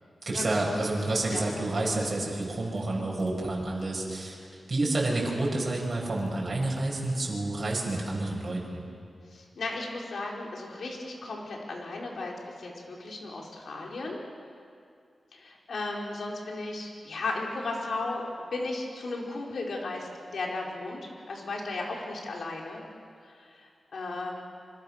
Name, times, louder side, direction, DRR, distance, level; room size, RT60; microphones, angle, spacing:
voice 1, 0.3-4.4 4.7-8.8, right 2 dB, 40° right, -3 dB, 7.0 m, -29 dB
voice 2, 9.3-14.2 15.3-18.2 18.5-22.9 23.2-24.4, left 2 dB, 75° left, -1 dB, 4.8 m, -35 dB
26.5 x 26.5 x 6.7 m, 2.3 s
wide cardioid pair, 110°, 0 cm